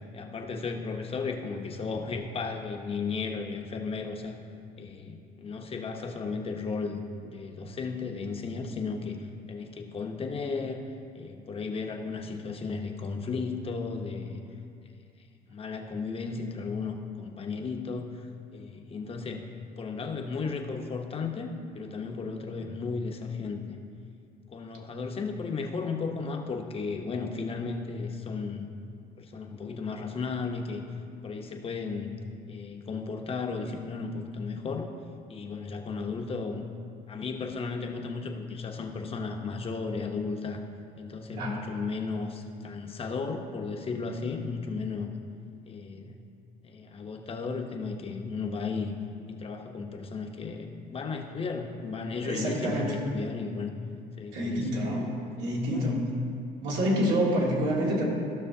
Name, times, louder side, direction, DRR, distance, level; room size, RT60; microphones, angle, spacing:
voice 1, 0.1-4.3 4.8-9.2 9.5-10.8 11.1-14.4 15.5-19.5 19.8-21.5 21.7-23.8 24.5-28.7 29.2-30.8 31.2-32.1 32.5-34.9 35.3-36.6 37.1-40.6 41.0-45.1 45.7-46.2 46.6-49.0 49.3-53.7 54.2-54.7 55.6-56.0, left 4 dB, 35° left, 3 dB, 0.9 m, -34 dB
voice 2, 52.2-53.0 54.3-56.0 56.6-58.1, equal, 90° right, -4 dB, 2.1 m, -27 dB
15.0 x 6.2 x 2.7 m, 2.4 s
cardioid pair, 110°, 17 cm